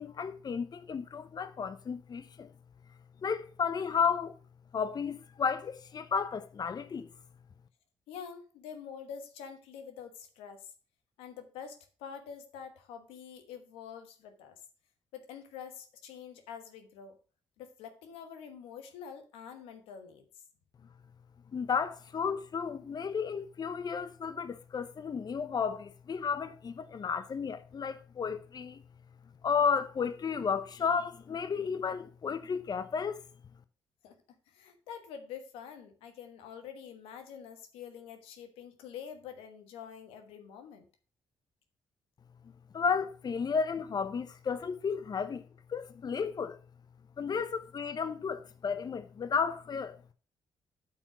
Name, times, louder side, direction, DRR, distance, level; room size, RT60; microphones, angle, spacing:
voice 1, 0.0-2.5 3.2-4.3 4.7-7.1 21.5-28.8 29.4-33.2 42.7-45.4 45.7-46.6 47.2-50.0, left 6 dB, 45° left, 0.7 m, -33 dB
voice 2, 8.1-10.7 11.2-14.6 15.1-17.2 17.6-20.2 34.0-34.1 34.5-40.9, left 7 dB, 90° left, 1.2 m, -46 dB
8.8 x 4.7 x 6.0 m
supercardioid pair, 60°, 9 cm